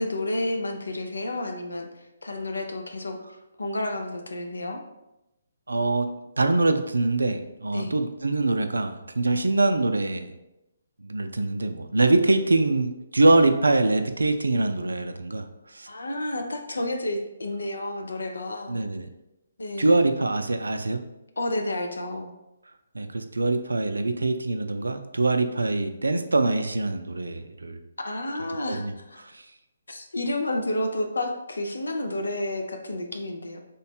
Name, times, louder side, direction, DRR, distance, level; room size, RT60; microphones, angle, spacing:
voice 1, 0.0-3.2 3.6-4.8 7.7-7.9 15.9-18.8 19.6-20.0 21.4-22.3 28.0-29.2 29.9-33.6, left 1 dB, 80° left, 4 dB, 0.5 m, -30 dB
voice 2, 5.7-6.1 6.4-10.3 11.0-15.4 15.7-15.9 18.7-19.1 19.8-21.0 22.9-27.8 28.7-28.9, right 2 dB, 85° right, 8 dB, 0.4 m, -23 dB
3.1 x 2.2 x 4.2 m, 0.94 s
figure-of-eight pair, 145°, 0 cm